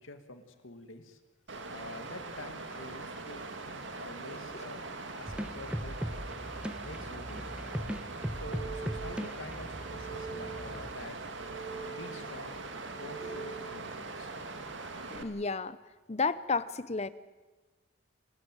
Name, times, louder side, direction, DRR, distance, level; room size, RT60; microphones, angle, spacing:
voice 1, 0.0-1.2 1.7-6.0 6.8-7.6 8.3-11.2 11.9-12.6 12.9-14.3, left 2 dB, 80° left, 8 dB, 2.2 m, -47 dB
Water, 1.5-15.2, right 3 dB, 65° right, 2.2 m, -42 dB
sound 1, 5.3-10.9, equal, 5° right, 1.0 m, -39 dB
sound 2, 8.2-9.3 9.7-10.8 11.2-12.3 12.7-13.9, right 6 dB, 20° right, 3.0 m, -45 dB
voice 2, 15.0-15.8 16.1-17.1, left 4 dB, 35° left, 16 dB, 0.8 m, -32 dB
29.5 x 13.5 x 9.2 m, 1.2 s
head